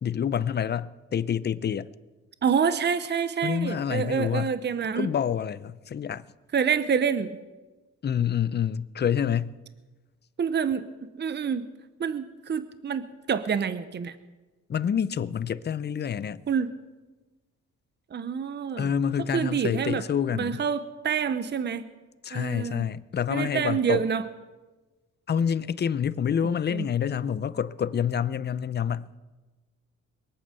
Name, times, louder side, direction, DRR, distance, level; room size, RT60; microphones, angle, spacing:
voice 1, 0.0-1.9 3.4-4.5 5.0-6.2 8.0-9.5 14.7-16.4 18.8-20.6 22.2-24.0 25.3-29.1, left 8 dB, 35° left, 0.6 m, -27 dB
voice 2, 2.4-5.1 6.5-7.4 10.4-11.7 12.0-14.1 16.5-16.7 18.1-18.9 19.3-20.1 20.3-21.8 22.3-22.8 23.3-24.2 26.4-26.9, right 7 dB, 35° right, 0.8 m, -27 dB
22.5 x 8.6 x 6.9 m
cardioid pair, 90°, 30 cm